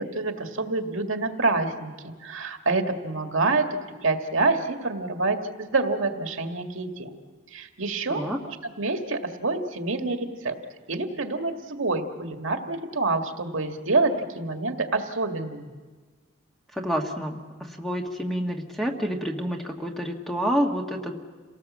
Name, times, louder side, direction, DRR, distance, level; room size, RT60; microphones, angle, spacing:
voice 1, 0.0-7.2 7.5-10.6 10.9-15.7, right 3 dB, 80° right, 4 dB, 1.9 m, -27 dB
voice 2, 8.1-8.4 16.7-21.2, equal, ahead, 2 dB, 1.5 m, -28 dB
28.0 x 18.0 x 7.4 m, 1.4 s
head